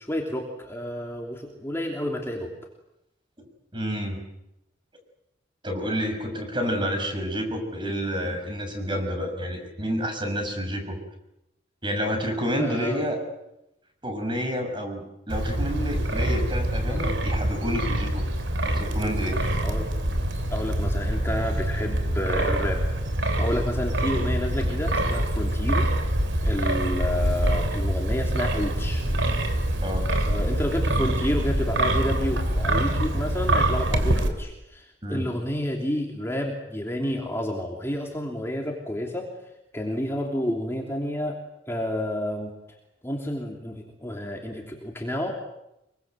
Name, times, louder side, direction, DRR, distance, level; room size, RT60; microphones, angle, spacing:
voice 1, 0.0-2.5 8.2-8.4 12.6-13.0 19.6-19.9 20.5-25.9 26.4-29.0 30.2-39.3 39.7-41.4 41.7-42.5 43.0-45.3, left 1 dB, 15° left, 0 dB, 3.1 m, -30 dB
voice 2, 3.7-4.2 5.6-11.0 11.8-13.2 14.0-18.2 18.6-19.4 29.8-30.1 35.0-35.3, equal, 25° right, 4 dB, 6.2 m, -29 dB
Wind, 15.3-34.3, right 1 dB, 70° right, 3.5 m, -25 dB
26.5 x 23.5 x 8.0 m, 0.87 s
head